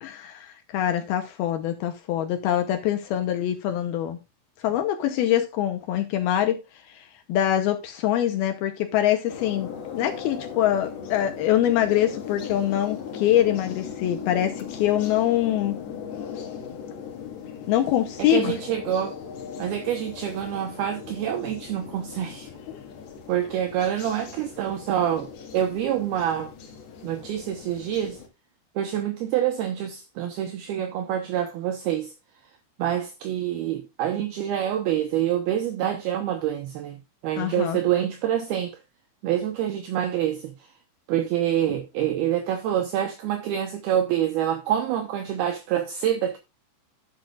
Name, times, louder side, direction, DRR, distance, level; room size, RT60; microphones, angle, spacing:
voice 1, 0.0-4.2 4.6-6.6 6.9-15.8 17.7-18.5 22.7-22.8 37.4-37.8, left 11 dB, 80° left, 2.2 m, -24 dB
sound 1, 9.3-28.3, left 7 dB, 60° left, 3.4 m, -38 dB
voice 2, 18.2-19.2 19.6-22.5 23.3-26.5 27.0-28.2 28.8-32.1 32.8-38.8 39.2-40.5 41.1-46.4, right 10 dB, 75° right, 2.5 m, -26 dB
10.5 x 10.5 x 2.4 m
omnidirectional pair, 5.5 m